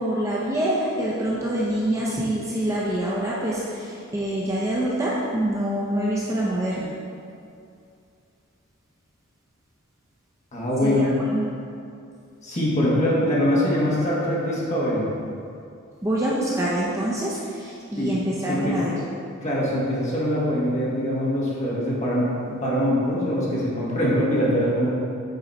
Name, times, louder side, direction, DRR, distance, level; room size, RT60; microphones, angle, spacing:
voice 1, 0.0-6.9 10.8-11.5 16.0-18.9, right 1 dB, 15° right, -6 dB, 0.7 m, -26 dB
voice 2, 10.5-11.1 12.4-15.1 18.0-18.1 18.5-18.8 19.4-24.9, equal, 35° left, -7 dB, 1.6 m, -23 dB
7.9 x 4.0 x 4.1 m, 2.5 s
head